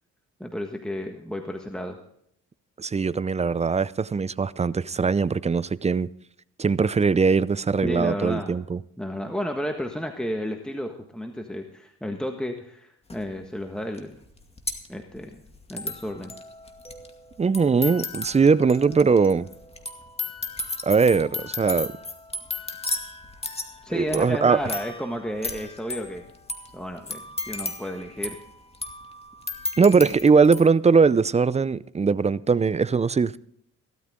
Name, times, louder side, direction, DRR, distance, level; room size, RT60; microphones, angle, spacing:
voice 1, 0.4-2.0 7.8-8.6 9.0-14.2 14.9-15.4 15.7-16.4 23.8-26.2 26.7-28.4, equal, 5° left, 1.5 m, -32 dB
voice 2, 2.8-6.1 6.6-8.8 17.4-19.5 20.8-21.9 23.9-24.6 29.8-33.4, right 5 dB, 20° right, 0.5 m, -20 dB
sound 1, 13.1-13.2 14.0-14.1 14.2-30.6, left 2 dB, 20° left, 2.2 m, -35 dB
16.5 x 13.5 x 3.7 m
cardioid pair, 90°, 30 cm